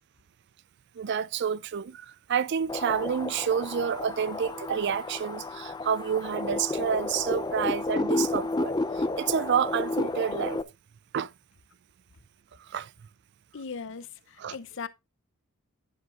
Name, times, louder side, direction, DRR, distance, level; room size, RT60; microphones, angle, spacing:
voice 1, 1.0-10.6 11.1-11.3 12.6-12.9 14.4-14.5, right 7 dB, 50° right, 0.4 m, -29 dB
sound 1, 2.7-10.6, left 2 dB, 20° left, 0.5 m, -31 dB
voice 2, 13.5-14.9, left 5 dB, 60° left, 0.7 m, -38 dB
11.0 x 9.5 x 2.5 m
head